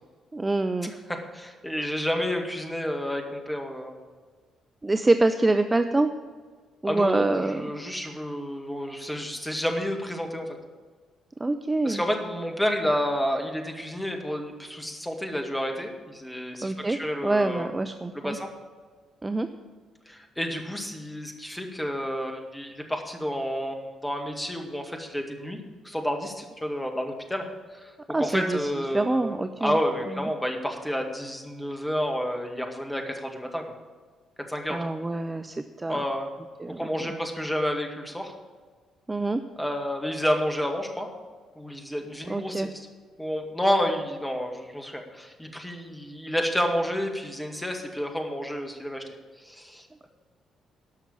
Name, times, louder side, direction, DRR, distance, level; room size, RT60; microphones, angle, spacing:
voice 1, 0.3-0.9 4.8-6.1 6.8-7.7 11.4-12.0 16.6-18.4 19.2-19.5 28.1-28.7 28.9-29.8 30.2-30.3 34.7-36.0 36.6-37.1 39.1-39.4 42.3-42.7, right 2 dB, 20° right, 8 dB, 0.5 m, -26 dB
voice 2, 1.1-3.9 6.8-10.5 11.8-17.7 18.1-18.5 20.1-25.6 25.8-27.4 27.8-27.9 28.2-33.6 34.5-34.8 35.9-36.3 36.8-38.3 39.6-41.1 41.6-42.7 43.2-49.0 49.4-50.1, equal, 5° left, 2 dB, 2.0 m, -30 dB
12.5 x 6.0 x 8.6 m, 1.5 s
figure-of-eight pair, 45°, 0 cm